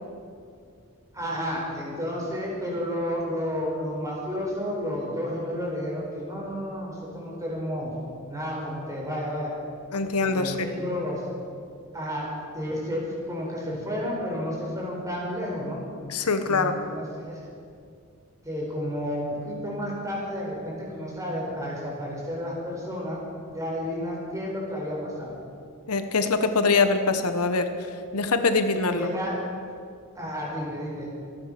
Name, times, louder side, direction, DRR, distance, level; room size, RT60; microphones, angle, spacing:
voice 1, 1.1-7.9 8.3-9.5 10.2-11.2 11.9-12.3 12.5-15.8 16.5-17.4 18.4-23.2 23.5-25.4 28.9-29.4 30.1-31.1, equal, 15° right, -3 dB, 4.7 m, -31 dB
voice 2, 9.9-10.7 16.1-16.7 25.9-27.7 28.1-29.1, left 4 dB, 90° left, 8 dB, 1.1 m, -23 dB
26.0 x 9.2 x 5.9 m, 2.3 s
head